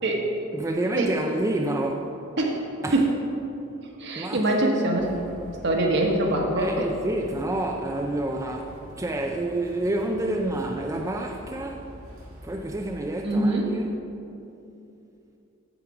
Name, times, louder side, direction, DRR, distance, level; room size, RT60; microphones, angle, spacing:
voice 1, 0.5-2.1 2.8-3.0 4.2-4.4 6.6-11.8 12.4-13.9, right 1 dB, 15° right, 1 dB, 0.4 m, -28 dB
voice 2, 4.0-5.1 5.6-6.9 13.2-13.8, right 1 dB, 55° right, 1 dB, 1.3 m, -23 dB
sound 1, 5.0-12.9, equal, 80° right, 1.8 m, -45 dB
8.1 x 7.4 x 4.8 m, 2.8 s
head